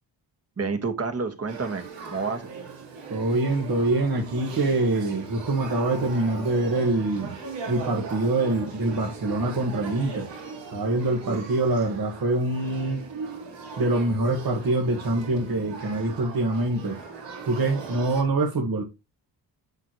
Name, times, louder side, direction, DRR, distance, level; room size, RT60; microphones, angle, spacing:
voice 1, 0.6-1.8 2.1-2.4 11.2-11.4, right 4 dB, 35° right, 7 dB, 1.7 m, -29 dB
Male speech man speaking / Child speech kid speaking / Conversation, 1.5-18.2, right 4 dB, 85° right, 3.4 m, -39 dB
voice 2, 3.1-7.4 7.7-10.3 10.7-13.0 13.8-17.0 17.4-18.8, right 2 dB, 55° right, -1 dB, 1.8 m, -25 dB
7.8 x 6.2 x 3.1 m, 0.26 s
cardioid pair, 70°, 42 cm